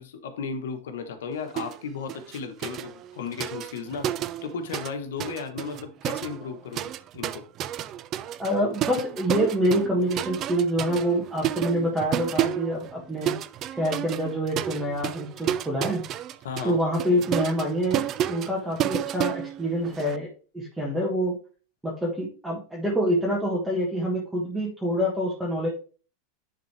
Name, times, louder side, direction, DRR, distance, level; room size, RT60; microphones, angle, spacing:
voice 1, 0.0-7.4 16.4-16.8, left 5 dB, 90° left, 6 dB, 1.4 m, -35 dB
sound 1, 1.6-1.8 2.1-4.9 5.2-20.2, right 11 dB, 35° right, 0.4 m, -31 dB
voice 2, 8.4-13.3 13.8-16.0 16.6-20.3 20.5-21.3 21.8-25.7, equal, 5° right, -4 dB, 1.6 m, -26 dB
10.5 x 3.9 x 3.4 m, 0.38 s
supercardioid pair, 135°, 0 cm